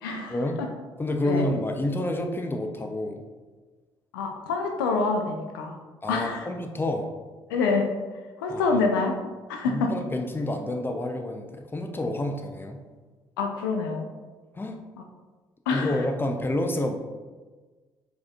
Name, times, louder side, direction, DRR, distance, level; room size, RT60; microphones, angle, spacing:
voice 1, 0.0-0.7 1.2-1.5 4.1-5.8 6.1-6.5 7.5-7.9 8.4-9.2 9.5-9.9 13.4-14.1 15.7-16.1, left 4 dB, 80° left, 3 dB, 0.5 m, -26 dB
voice 2, 1.0-3.2 6.0-7.1 8.5-8.8 9.6-12.8 14.6-14.8 15.7-17.0, left 1 dB, 20° left, 4 dB, 0.7 m, -29 dB
4.6 x 4.4 x 2.4 m, 1.3 s
hypercardioid pair, 50°, 11 cm